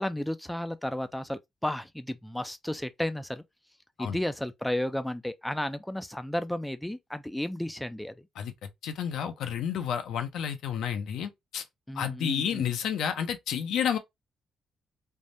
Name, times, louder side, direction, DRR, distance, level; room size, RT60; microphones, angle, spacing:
voice 1, 0.0-3.4 4.0-8.3 11.9-12.7, left 1 dB, 5° left, 0.3 m, -33 dB
voice 2, 8.8-11.6 12.0-14.0, left 8 dB, 80° left, 0.5 m, -30 dB
3.4 x 2.1 x 2.5 m
cardioid pair, 90°, 0 cm